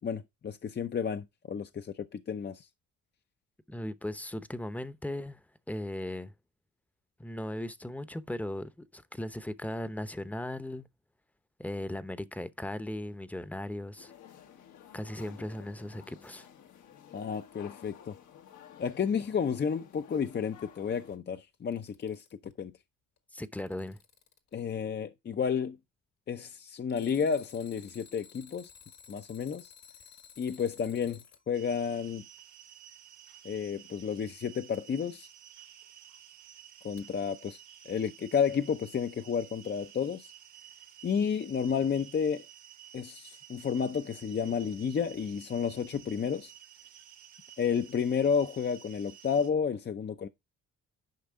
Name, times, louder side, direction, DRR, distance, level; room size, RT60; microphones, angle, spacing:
voice 1, 0.0-2.7 17.1-18.1 18.8-22.3 22.6-22.7 24.5-25.8 26.3-28.7 29.1-29.7 30.4-32.2 33.4-35.3 36.8-40.3 41.0-42.4 42.9-46.5 47.6-50.3, left 6 dB, 35° left, 0.6 m, -31 dB
voice 2, 3.7-5.4 5.7-6.3 7.2-10.9 11.6-14.1 14.9-16.5 23.3-24.0, left 1 dB, 5° left, 0.8 m, -37 dB
sound 1, 14.0-21.2, left 9 dB, 75° left, 1.5 m, -53 dB
Alarm, 21.5-22.5 23.2-24.5 26.9-31.4 34.7-34.8 37.0-37.1, left 7 dB, 60° left, 1.6 m, -55 dB
sound 2, 31.5-49.5, right 10 dB, 70° right, 1.6 m, -53 dB
10.5 x 5.3 x 3.6 m
cardioid pair, 90°, 30 cm